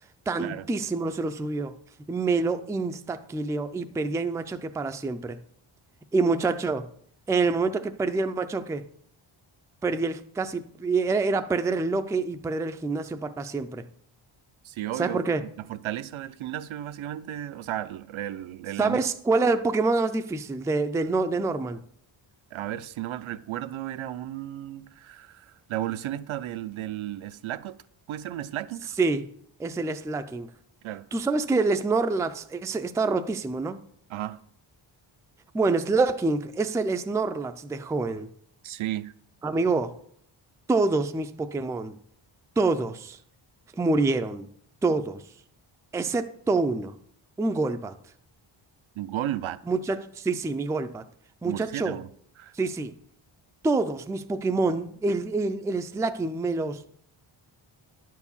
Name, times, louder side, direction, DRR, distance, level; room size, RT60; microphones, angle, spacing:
voice 1, 0.3-1.7 2.1-5.4 6.1-6.9 7.3-8.8 9.8-13.8 15.0-15.4 18.8-21.8 29.0-29.3 29.6-30.5 31.1-33.8 35.5-38.3 39.4-39.9 40.7-42.0 42.6-43.2 43.7-44.5 44.8-45.2 45.9-46.9 47.4-47.9 49.7-51.0 51.4-52.0 52.5-52.9 53.6-56.9, right 3 dB, 5° right, 0.3 m, -26 dB
voice 2, 14.6-15.2 15.7-19.0 22.5-27.8 28.1-28.9 30.8-31.1 34.1-34.4 38.6-39.1 49.0-49.6 51.4-52.1 52.4-52.5, right 13 dB, 75° right, 0.6 m, -34 dB
10.5 x 4.7 x 7.1 m
wide cardioid pair, 145°, 49 cm